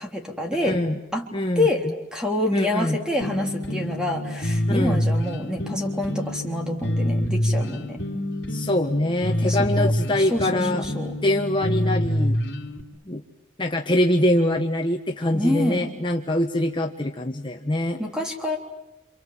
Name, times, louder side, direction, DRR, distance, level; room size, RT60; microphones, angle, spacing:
voice 1, 0.0-0.8 1.1-1.3 1.6-8.0 9.4-9.9 10.2-11.2 15.3-15.9 18.0-18.6, left 1 dB, 5° right, 2 dB, 3.6 m, -27 dB
voice 2, 0.6-1.0 1.3-1.7 2.5-3.0 4.7-5.0 8.5-10.8 11.2-12.4 13.1-13.2 13.6-18.0, left 1 dB, 25° left, 2 dB, 1.3 m, -24 dB
sound 1, 3.2-12.8, left 1 dB, 60° left, 2.9 m, -26 dB
28.0 x 28.0 x 7.6 m, 0.89 s
head